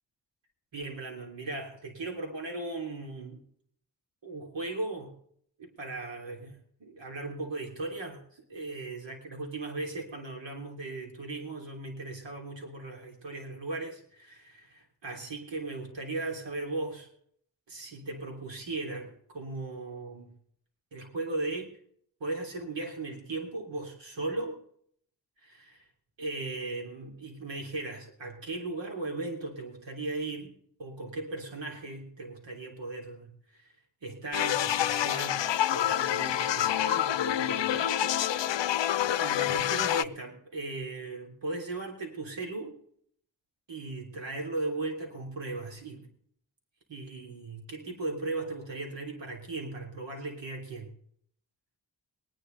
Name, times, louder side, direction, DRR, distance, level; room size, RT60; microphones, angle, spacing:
voice 1, 0.7-3.4 4.2-5.1 5.6-17.1 17.7-20.3 20.9-21.7 22.2-24.6 25.4-25.9 26.2-33.7 34.0-38.2 39.2-42.8 43.7-46.1 46.9-50.9, right 2 dB, 90° right, 1 dB, 3.3 m, -37 dB
sound 1, 34.3-40.0, left 11 dB, 80° left, 0.6 m, -27 dB
22.0 x 10.0 x 3.9 m, 0.63 s
wide cardioid pair, 70°, 43 cm